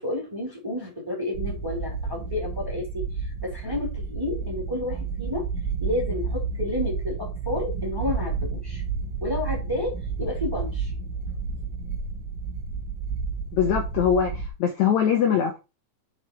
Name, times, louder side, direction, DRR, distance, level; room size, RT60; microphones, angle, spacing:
voice 1, 0.0-5.5 5.8-8.8 9.2-10.9, left 2 dB, 5° right, 2.2 m, -31 dB
sound 1, 1.3-14.5, right 5 dB, 90° right, 2.9 m, -31 dB
voice 2, 13.5-15.6, left 8 dB, 70° left, 1.8 m, -22 dB
6.8 x 4.6 x 4.4 m
omnidirectional pair, 3.9 m